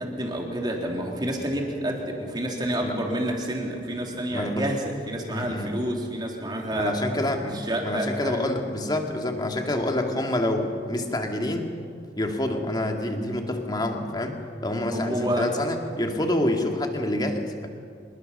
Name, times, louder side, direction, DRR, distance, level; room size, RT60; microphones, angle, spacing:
voice 1, 0.0-7.0 7.5-8.5 14.9-15.5, right 1 dB, 25° right, 0 dB, 3.3 m, -29 dB
voice 2, 4.3-4.7 5.3-5.7 6.7-11.7 12.1-14.4 14.6-17.7, left 1 dB, 25° left, 3 dB, 2.2 m, -27 dB
26.0 x 21.5 x 6.8 m, 2.3 s
head